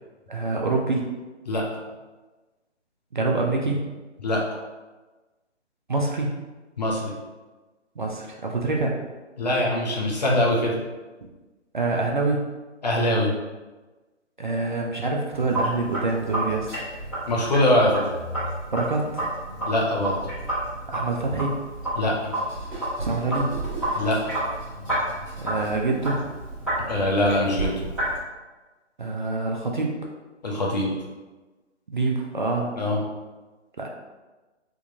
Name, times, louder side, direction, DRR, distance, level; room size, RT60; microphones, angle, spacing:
voice 1, 0.3-1.2 3.1-3.8 5.9-6.3 8.0-8.9 11.7-12.4 14.4-16.8 18.7-19.2 20.9-21.5 23.0-23.5 25.4-26.2 29.0-29.9 31.9-32.8 33.8-33.9, right 3 dB, 45° right, 0 dB, 0.4 m, -26 dB
voice 2, 6.8-7.1 9.4-10.7 12.8-13.3 17.3-18.0 19.6-20.2 22.0-22.1 23.9-24.3 26.9-27.8 30.4-30.9 32.8-33.0, left 1 dB, 35° left, -3 dB, 0.7 m, -22 dB
Sink (filling or washing), 15.3-28.2, right 1 dB, ahead, 0.9 m, -30 dB
3.5 x 2.9 x 2.7 m, 1.2 s
figure-of-eight pair, 145°, 36 cm